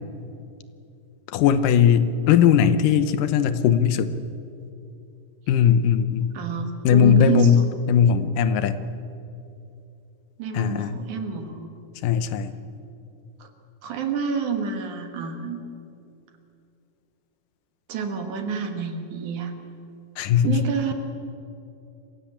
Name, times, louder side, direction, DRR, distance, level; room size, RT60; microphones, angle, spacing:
voice 1, 1.3-4.2 5.5-6.3 6.8-8.8 10.5-11.0 12.0-12.5 20.2-20.6, left 8 dB, 80° left, 12 dB, 2.5 m, -19 dB
voice 2, 6.3-7.7 10.4-11.7 13.4-13.5 13.8-15.6 17.9-19.5 20.4-20.9, right 5 dB, 65° right, 6 dB, 3.0 m, -28 dB
26.5 x 16.0 x 8.7 m, 2.7 s
omnidirectional pair, 3.8 m